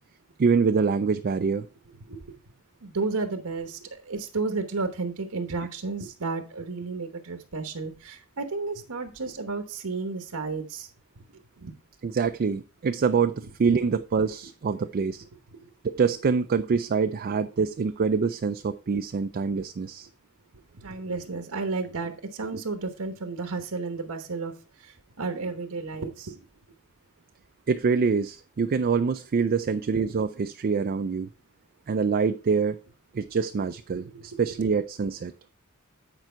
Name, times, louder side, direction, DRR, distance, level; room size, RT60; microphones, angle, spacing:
voice 1, 0.4-1.7 12.0-15.2 15.8-20.1 27.7-31.3 31.9-32.8 33.1-35.3, right 5 dB, 45° right, 9 dB, 0.4 m, -25 dB
voice 2, 2.8-10.9 11.6-11.7 13.6-13.8 15.6-15.7 20.7-26.4 34.1-34.2, right 3 dB, 80° right, 7 dB, 1.0 m, -32 dB
9.1 x 4.7 x 4.4 m, 0.35 s
head